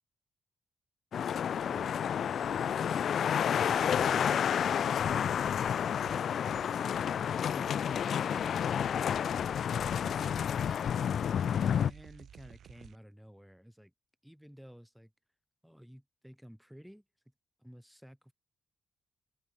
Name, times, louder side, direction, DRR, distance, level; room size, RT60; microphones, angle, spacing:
sound 1, 1.1-11.9, left 8 dB, 70° left, 0.6 m, -30 dB
voice 1, 1.6-2.2 2.6-3.3 7.5-7.8 11.5-13.9 14.2-15.1 15.6-17.1 17.6-18.3, equal, ahead, 5.4 m, -53 dB
voice 2, 2.1-3.4, left 5 dB, 45° left, 3.9 m, -55 dB
sound 2, 5.6-6.2 6.5-13.0, right 9 dB, 85° right, 2.6 m, -56 dB
open air
wide cardioid pair, 120°, 0 cm